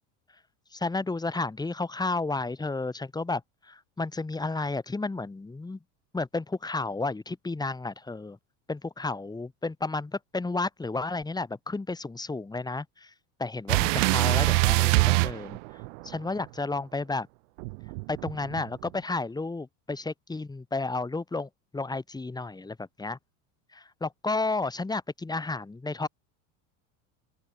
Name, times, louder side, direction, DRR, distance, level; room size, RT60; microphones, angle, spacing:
voice 1, 0.7-3.4 3.7-5.8 6.1-8.4 8.7-13.1 13.4-15.6 16.0-17.3 18.1-23.2 23.7-26.1, left 3 dB, 10° left, 6.9 m, -32 dB
sound 1, 13.7-16.2 17.6-18.9, right 28 dB, 75° right, 2.2 m, -24 dB
open air
supercardioid pair, 130°, 37 cm